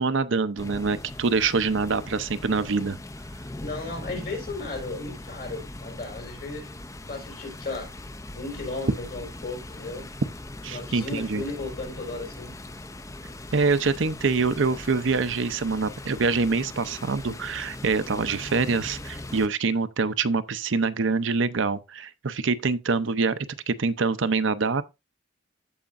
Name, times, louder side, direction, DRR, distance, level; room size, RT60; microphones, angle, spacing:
voice 1, 0.0-3.0 10.6-11.4 13.5-24.8, right 4 dB, 75° right, 0.6 m, -25 dB
sound 1, 0.6-19.5, left 2 dB, 15° left, 0.5 m, -40 dB
voice 2, 3.6-6.7 7.1-7.9 8.3-10.1 10.7-12.6, left 3 dB, 50° left, 4.1 m, -35 dB
14.0 x 5.0 x 2.5 m
head